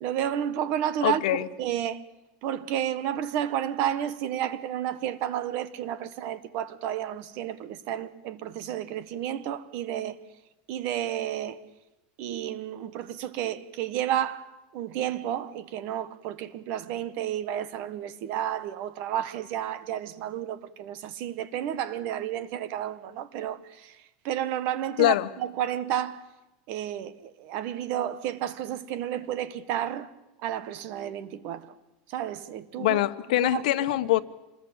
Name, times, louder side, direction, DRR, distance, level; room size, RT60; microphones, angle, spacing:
voice 1, 0.0-2.0 2.4-10.2 10.7-11.6 12.2-26.2 26.7-30.1 30.4-31.7 32.1-33.0 33.3-33.6, right 11 dB, 45° right, 1.4 m, -31 dB
voice 2, 1.0-1.5 25.0-25.3 32.8-34.2, left 16 dB, 75° left, 1.3 m, -23 dB
26.0 x 20.5 x 8.9 m
supercardioid pair, 170°, 4 cm